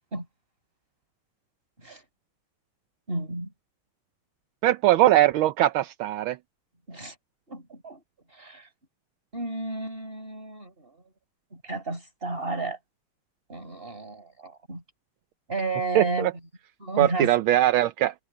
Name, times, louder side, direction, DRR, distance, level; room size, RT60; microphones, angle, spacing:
voice 1, 3.1-3.5 6.9-7.1 7.5-8.0 8.3-8.7 9.3-11.0 11.5-12.8 13.5-14.8 15.5-16.3 16.8-17.3, right 2 dB, 25° right, 5.7 m, -32 dB
voice 2, 4.6-6.4 15.9-16.3 17.0-18.1, right 14 dB, 80° right, 1.5 m, -21 dB
omnidirectional pair, 2.3 m